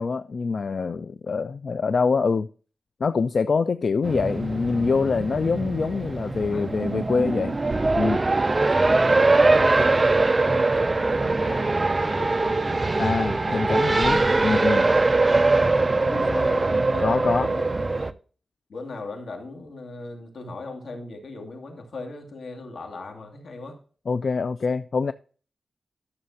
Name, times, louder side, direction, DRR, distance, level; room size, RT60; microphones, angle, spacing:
voice 1, 0.0-2.5 3.0-7.6 8.0-8.2 13.0-14.9 17.0-17.5 24.1-25.1, left 4 dB, 60° left, 0.4 m, -25 dB
Race car auto racing, 4.0-18.1, right 3 dB, 30° right, 0.5 m, -22 dB
voice 2, 6.5-7.1 9.3-13.8 15.3-17.1 17.4-18.1 18.7-23.8, left 2 dB, 80° left, 2.4 m, -38 dB
12.5 x 6.7 x 2.8 m
wide cardioid pair, 105°, 0 cm